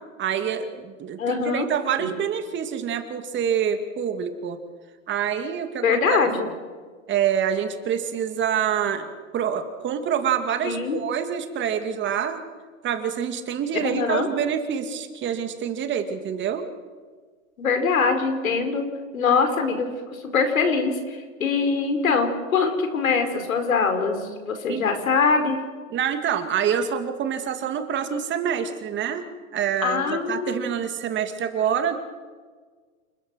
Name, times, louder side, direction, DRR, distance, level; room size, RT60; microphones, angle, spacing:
voice 1, 0.2-4.6 5.1-6.0 7.1-12.4 12.8-16.7 24.7-24.8 25.9-29.2 29.5-31.9, right 8 dB, 30° right, 7 dB, 2.4 m, -26 dB
voice 2, 1.2-1.7 2.0-2.1 5.8-6.5 10.6-11.0 13.8-14.3 17.6-18.8 19.1-19.9 20.3-25.6 29.8-30.5, left 5 dB, 90° left, 7 dB, 4.8 m, -23 dB
28.5 x 20.5 x 6.4 m, 1.5 s
hypercardioid pair, 125°, 40 cm